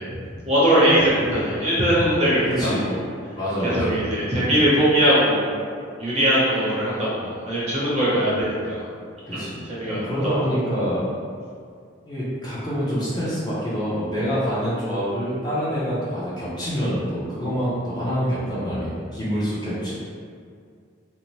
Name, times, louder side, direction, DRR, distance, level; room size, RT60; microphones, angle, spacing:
voice 1, 0.0-3.0 3.6-5.5 6.0-8.8 9.3-10.0, equal, 35° right, -8 dB, 0.7 m, -21 dB
voice 2, 3.3-3.9 9.4-9.6 9.9-11.0 12.1-19.9, equal, 20° left, -9 dB, 0.6 m, -26 dB
2.7 x 2.0 x 3.1 m, 2.2 s
head